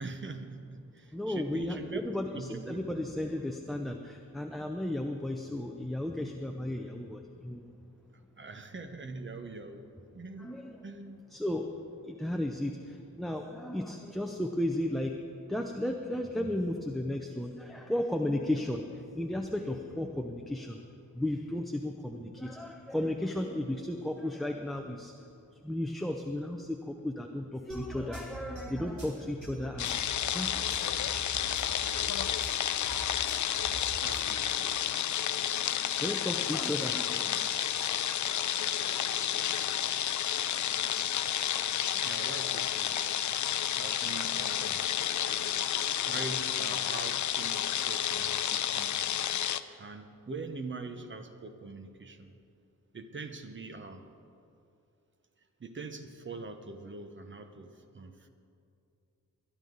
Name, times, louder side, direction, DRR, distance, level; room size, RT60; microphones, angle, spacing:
voice 1, 0.0-2.0 2.3-2.8 8.4-9.8 10.1-10.5 10.8-11.2 34.0-34.7 41.9-43.0 43.8-44.9 46.1-49.0 49.8-52.3 52.9-54.1 55.6-58.3, right 3 dB, 35° right, 7 dB, 1.0 m, -43 dB
voice 2, 1.1-7.7 10.4-10.8 11.3-11.7 12.0-15.1 15.5-20.8 21.1-25.1 25.6-30.0 30.3-30.6 36.0-37.4, left 1 dB, ahead, 3 dB, 0.6 m, -34 dB
sound 1, 27.7-34.3, right 2 dB, 55° right, 3.9 m, -44 dB
sound 2, 29.8-49.6, left 10 dB, 60° left, 0.5 m, -31 dB
22.0 x 11.0 x 3.9 m, 2.6 s
wide cardioid pair, 145°, 33 cm